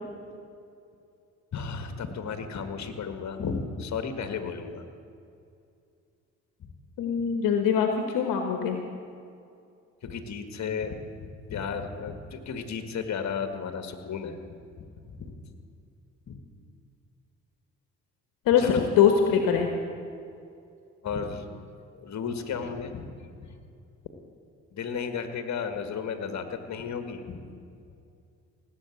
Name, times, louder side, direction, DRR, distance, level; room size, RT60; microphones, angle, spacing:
voice 1, 1.5-4.9 6.6-6.7 10.0-11.0 11.5-14.4 14.8-15.3 16.3-16.4 18.6-18.8 21.0-21.5 21.9-23.1 23.4-23.5 24.7-27.4, left 6 dB, 55° left, 8 dB, 1.8 m, -34 dB
voice 2, 7.0-8.8 18.5-19.7, left 7 dB, 75° left, 5 dB, 1.4 m, -23 dB
18.0 x 8.4 x 8.5 m, 2.5 s
hypercardioid pair, 55°, 34 cm